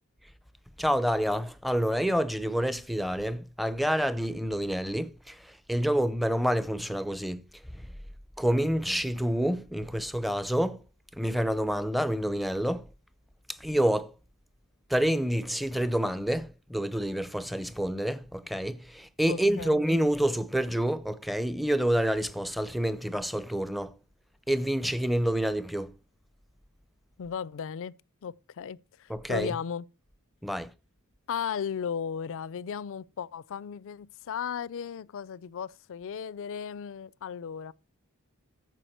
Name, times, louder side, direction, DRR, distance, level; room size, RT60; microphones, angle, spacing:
voice 1, 0.8-7.4 7.7-7.9 8.4-10.8 11.1-12.9 13.5-14.1 14.9-24.0 24.5-25.9 29.1-29.5 30.4-30.7, equal, ahead, 0.5 m, -28 dB
voice 2, 19.3-19.8 27.2-27.9 28.2-29.8 31.3-37.7, left 7 dB, 60° left, 0.4 m, -35 dB
14.5 x 4.9 x 4.4 m
head